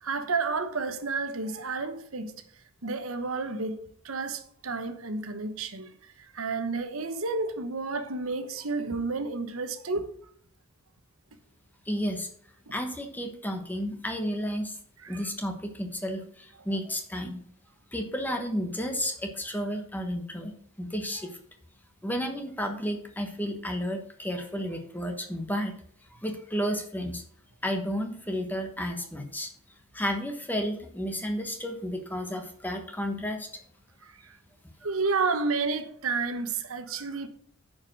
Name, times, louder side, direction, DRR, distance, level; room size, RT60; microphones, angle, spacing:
voice 1, 0.0-2.3 2.8-3.8 4.0-5.9 6.3-10.1 12.7-12.8 15.0-15.3 34.2-34.4 34.8-37.3, right 4 dB, 80° right, 1.1 m, -31 dB
voice 2, 11.9-12.3 12.7-14.8 15.1-17.4 17.9-20.5 20.8-21.3 22.0-25.7 26.2-27.2 27.6-29.5 29.9-33.5, equal, 10° left, 1.1 m, -32 dB
9.2 x 5.2 x 6.0 m
head